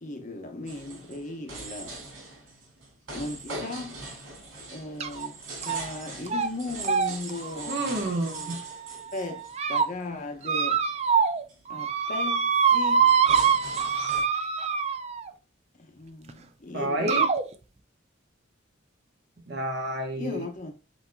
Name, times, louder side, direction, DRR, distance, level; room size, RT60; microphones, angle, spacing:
voice 1, 0.0-2.0 3.1-4.1 4.7-7.8 9.1-10.8 11.7-13.1 15.8-17.2 20.2-20.7, left 2 dB, 40° left, 0.8 m, -37 dB
sound 1, 0.7-10.0 10.4-10.8 11.1-11.2 11.5-11.7 12.7-14.2, right 2 dB, 90° right, 2.6 m, -41 dB
sound 2, 5.0-5.3 5.6-6.0 6.3-6.5 6.8-8.8 9.3-9.9 10.4-11.4 11.7-15.3 16.3-16.4 17.1-17.4, right 6 dB, 30° right, 0.4 m, -25 dB
voice 2, 7.7-8.6 16.7-17.3 19.5-20.4, right 1 dB, 55° right, 1.1 m, -29 dB
8.2 x 2.8 x 2.2 m
head